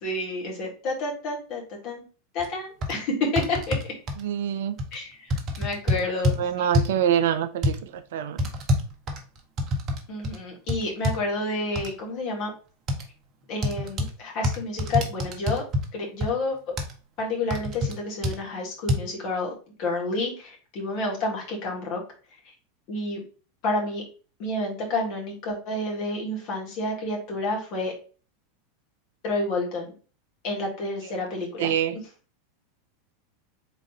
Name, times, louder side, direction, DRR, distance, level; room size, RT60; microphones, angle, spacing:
voice 1, 0.0-2.0 2.3-3.8 4.9-6.7 10.1-12.5 13.5-15.6 15.9-16.6 17.2-19.5 19.8-22.0 22.9-23.2 23.6-24.0 24.4-27.9 29.2-29.9 30.4-31.7, left 2 dB, 45° left, 1.8 m, -29 dB
sound 1, 2.4-2.5 2.8-2.9 3.4-4.2 4.8-4.9 5.3-6.4 6.7-7.0 7.6-7.8 8.4-10.0 10.2-10.4 10.7-11.2 11.7-11.9 12.9-13.0 13.6-14.1 14.4-15.9 16.2-16.3 16.8-16.9 17.5-17.9 18.2-18.4 18.9-19.0, left 1 dB, 35° right, 0.8 m, -25 dB
voice 2, 4.2-4.8 6.4-8.5 31.0-31.1 31.6-32.0, right 9 dB, 60° right, 0.4 m, -25 dB
4.1 x 3.7 x 3.0 m
figure-of-eight pair, 85°, 0 cm